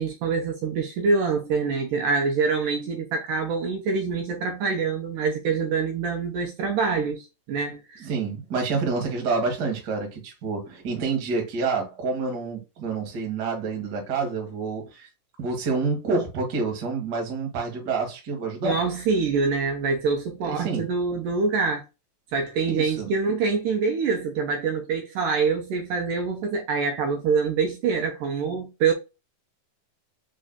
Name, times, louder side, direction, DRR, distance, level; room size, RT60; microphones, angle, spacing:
voice 1, 0.0-8.0 18.6-21.8 22.3-28.9, right 5 dB, 75° right, 2.1 m, -25 dB
voice 2, 8.0-15.1 15.4-18.8 20.4-20.8 22.7-23.1, right 4 dB, 55° right, 1.1 m, -28 dB
5.4 x 3.8 x 2.2 m
omnidirectional pair, 4.3 m